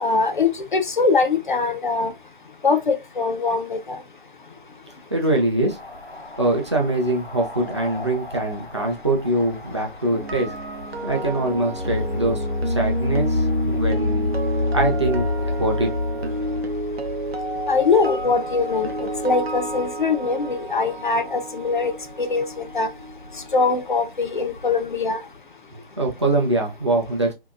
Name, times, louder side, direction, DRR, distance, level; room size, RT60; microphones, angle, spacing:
voice 1, 0.0-2.1 2.6-4.0 17.7-21.9 22.2-22.9 23.5-25.2, left 4 dB, 55° left, 0.4 m, -22 dB
voice 2, 5.1-5.8 6.4-10.5 11.0-14.3 14.7-15.3 15.6-15.9 26.0-27.3, right 2 dB, 30° right, 0.5 m, -23 dB
sound 1, 5.7-21.3 21.6-25.4, left 3 dB, 85° left, 1.0 m, -30 dB
sound 2, 10.1-24.1 24.4-24.7, right 2 dB, 85° right, 0.6 m, -31 dB
2.7 x 2.7 x 2.4 m
figure-of-eight pair, 145°, 30 cm